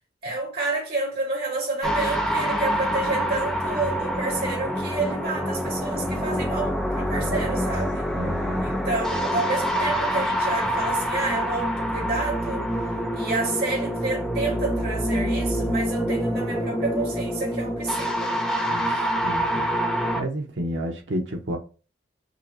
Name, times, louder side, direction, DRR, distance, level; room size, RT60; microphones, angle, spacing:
voice 1, 0.2-8.1 8.6-12.6 13.1-18.4 18.8-19.1, right 3 dB, 55° right, 1.9 m, -29 dB
sound 1, 1.8-20.2, equal, 5° left, 0.4 m, -26 dB
voice 2, 7.1-7.6 8.1-8.7 18.7-18.9 19.2-19.7 20.2-21.6, equal, 85° right, 0.8 m, -31 dB
5.4 x 2.2 x 2.8 m
head